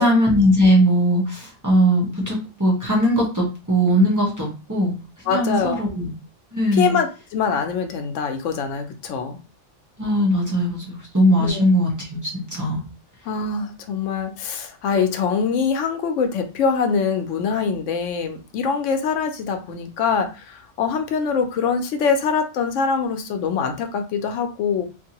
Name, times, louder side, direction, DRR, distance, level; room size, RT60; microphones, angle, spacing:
voice 1, 0.0-4.9 5.2-6.1 6.5-7.0 10.0-12.8, equal, 20° right, -5 dB, 0.8 m, -19 dB
voice 2, 5.3-5.8 6.7-9.4 11.4-11.6 13.2-24.9, left 6 dB, 90° left, 7 dB, 0.9 m, -24 dB
2.6 x 2.5 x 2.8 m, 0.32 s
omnidirectional pair, 1.2 m